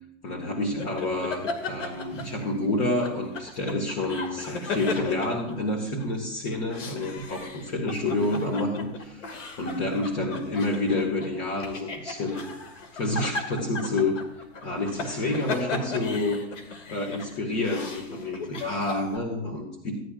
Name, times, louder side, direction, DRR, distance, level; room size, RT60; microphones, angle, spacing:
voice 1, 0.2-12.5 12.9-14.2 14.6-16.4 16.9-20.0, left 2 dB, 45° left, -1 dB, 2.3 m, -29 dB
sound 1, 0.8-2.7 3.0-6.1 6.5-19.2, left 3 dB, 80° left, 2.4 m, -36 dB
17.0 x 10.5 x 2.6 m, 0.86 s
hypercardioid pair, 135°, 37 cm